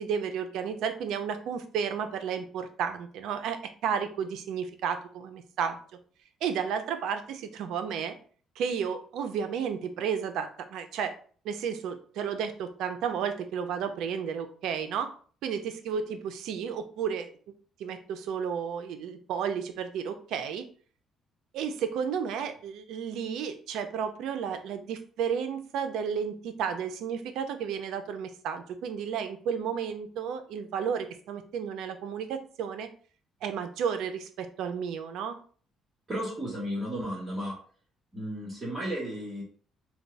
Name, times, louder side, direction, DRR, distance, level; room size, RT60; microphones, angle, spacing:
voice 1, 0.0-5.8 6.4-8.2 8.6-11.1 11.4-15.1 15.4-17.3 17.8-20.6 21.5-32.9 33.4-35.4, right 7 dB, 80° right, 8 dB, 0.6 m, -32 dB
voice 2, 36.1-37.5 38.1-39.4, equal, 25° right, -6 dB, 1.9 m, -33 dB
4.5 x 2.3 x 4.0 m, 0.43 s
cardioid pair, 140°, 0 cm